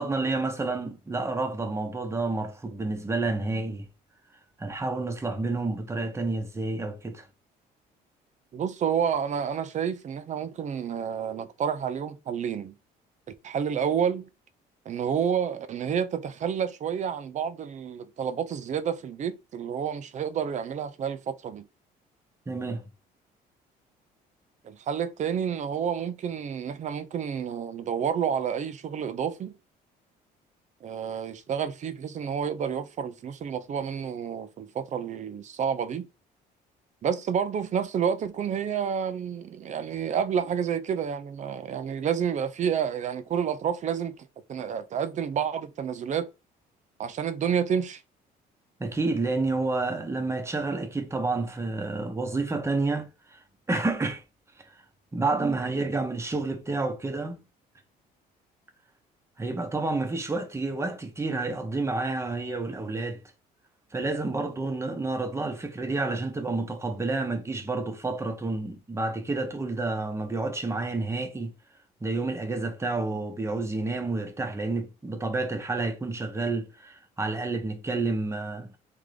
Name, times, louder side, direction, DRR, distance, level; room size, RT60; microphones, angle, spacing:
voice 1, 0.0-3.9 4.6-7.2 22.5-22.8 48.8-53.4 53.7-54.2 54.6-54.7 55.1-57.4 59.4-63.2 63.9-71.5 72.0-78.7, right 3 dB, 15° right, 1.0 m, -29 dB
voice 2, 8.5-12.7 13.4-14.3 14.9-21.7 24.6-29.5 30.8-36.1 37.0-44.1 44.5-46.3 47.0-48.0, right 7 dB, 45° right, 0.6 m, -29 dB
3.7 x 3.5 x 3.4 m
cardioid pair, 110°, 17 cm